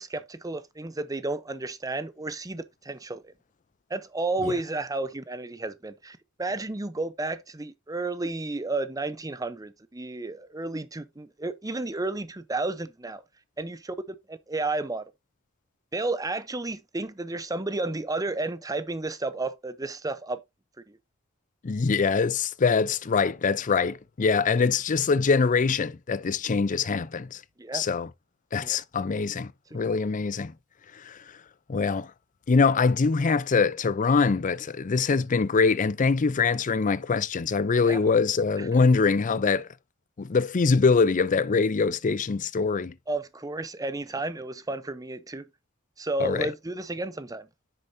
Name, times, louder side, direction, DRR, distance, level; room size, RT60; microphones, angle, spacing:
voice 1, 0.0-3.3 3.9-13.2 13.6-14.0 14.3-15.0 15.9-20.4 20.9-21.0 27.6-27.8 28.6-28.8 37.8-38.0 38.6-38.7 43.1-45.5 46.0-47.5, right 2 dB, 15° right, 0.7 m, -32 dB
voice 2, 21.6-27.4 27.7-28.1 28.5-30.5 31.0-31.2 31.7-32.1 32.5-39.7 40.2-42.9 46.2-46.5, left 4 dB, 40° left, 0.5 m, -23 dB
9.9 x 6.6 x 2.7 m
head